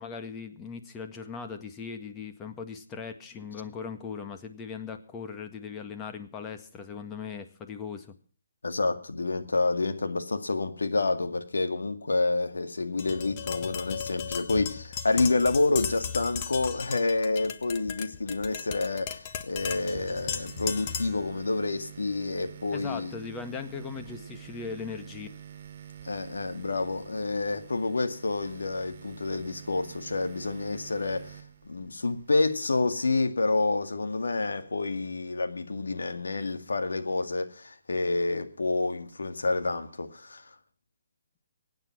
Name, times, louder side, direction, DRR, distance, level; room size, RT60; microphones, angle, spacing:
voice 1, 0.0-8.2 22.7-25.3, left 5 dB, 20° left, 1.9 m, -39 dB
voice 2, 8.6-23.1 26.0-40.5, left 3 dB, 80° left, 2.1 m, -28 dB
Tap, 13.0-21.3, left 7 dB, 35° left, 1.5 m, -36 dB
sound 1, 19.6-32.5, right 9 dB, 45° right, 2.2 m, -47 dB
23.5 x 9.4 x 6.0 m
figure-of-eight pair, 140°, 0 cm